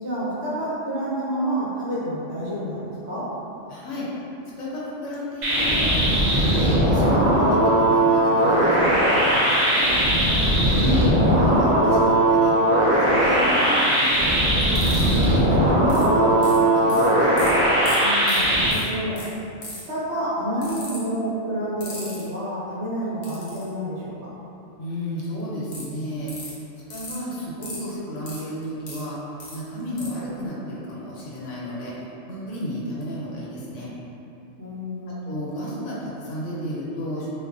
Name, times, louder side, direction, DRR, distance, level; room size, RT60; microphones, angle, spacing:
voice 1, 0.0-3.3 10.4-11.1 18.0-19.2 19.9-24.3 34.6-35.4, right 1 dB, 65° right, -9 dB, 0.9 m, -29 dB
voice 2, 3.7-4.1 4.6-5.9 6.2-9.8 10.7-12.5 12.9-14.1 14.5-17.3 24.8-26.3 26.9-29.2 29.5-31.9 32.3-33.9 35.2-37.3, equal, 70° left, -6 dB, 0.9 m, -32 dB
sound 1, 5.4-18.7, right 1 dB, 90° right, 0.4 m, -19 dB
sound 2, 14.8-15.2 15.9-16.0 16.4-17.0 17.4-17.5 17.9-18.0 18.2-18.4 18.7-18.8 19.2-19.3 19.6-19.9 20.6-21.0 21.8-22.2 23.2-23.6 25.7-25.8 26.3-26.5 26.9-27.2 27.6-27.8 28.3-29.0 29.4-29.5 30.0-30.1, left 2 dB, 50° left, 0.5 m, -37 dB
2.4 x 2.3 x 2.3 m, 2.8 s
omnidirectional pair, 1.3 m